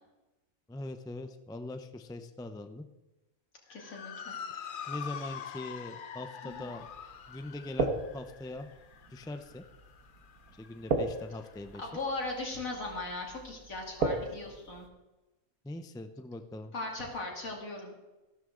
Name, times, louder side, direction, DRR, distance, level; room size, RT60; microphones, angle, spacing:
voice 1, 0.7-2.9 4.9-6.9 7.3-8.7 9.1-9.6 10.6-11.9 15.6-16.7, left 2 dB, 5° left, 8 dB, 0.3 m, -41 dB
voice 2, 3.7-4.4 6.4-6.7 11.8-14.9 16.7-17.9, left 2 dB, 70° left, -1 dB, 3.2 m, -38 dB
Motor vehicle (road) / Siren, 3.7-12.3, left 7 dB, 50° left, 0.6 m, -45 dB
sound 1, 6.5-14.9, right 3 dB, 85° right, 1.9 m, -38 dB
14.0 x 12.5 x 3.8 m, 1.1 s
omnidirectional pair, 1.5 m